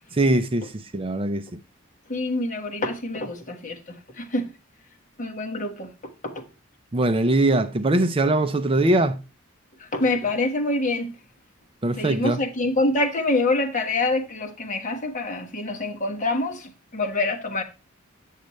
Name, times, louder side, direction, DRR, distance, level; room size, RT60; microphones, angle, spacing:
voice 1, 0.1-1.6 6.9-9.2 11.8-12.4, right 2 dB, 25° right, 0.5 m, -22 dB
voice 2, 2.1-3.8 4.2-4.5 5.2-5.9 6.2-6.3 9.8-11.1 12.0-17.6, left 2 dB, 40° left, 1.3 m, -26 dB
8.4 x 6.4 x 3.0 m
head